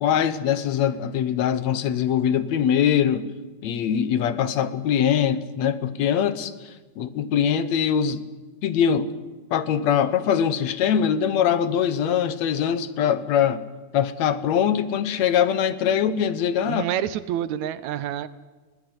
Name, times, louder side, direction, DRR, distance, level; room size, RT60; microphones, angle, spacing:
voice 1, 0.0-3.3 3.6-6.5 7.0-8.2 8.6-9.1 9.5-13.6 13.9-16.8, left 8 dB, 65° left, 14 dB, 2.2 m, -22 dB
voice 2, 16.7-18.3, right 11 dB, 70° right, 15 dB, 2.1 m, -28 dB
21.0 x 18.5 x 9.6 m, 1.3 s
omnidirectional pair, 3.6 m